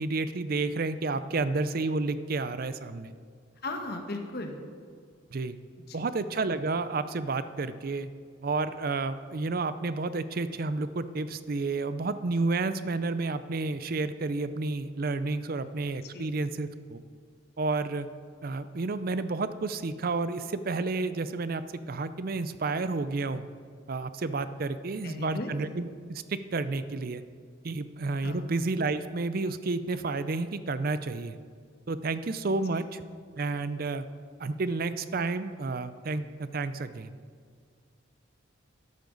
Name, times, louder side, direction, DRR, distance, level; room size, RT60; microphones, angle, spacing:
voice 1, 0.0-3.1 5.3-5.6 5.9-8.1 8.4-17.0 17.6-18.1 18.4-23.5 23.9-27.2 27.6-31.4 31.9-33.0 33.4-34.0 34.4-37.2, right 3 dB, 45° right, 13 dB, 0.5 m, -31 dB
voice 2, 3.6-4.6 5.9-6.1 16.1-16.3 25.0-25.5 28.2-28.4, left 2 dB, 50° left, 3 dB, 1.4 m, -36 dB
13.0 x 12.0 x 3.9 m, 2.1 s
head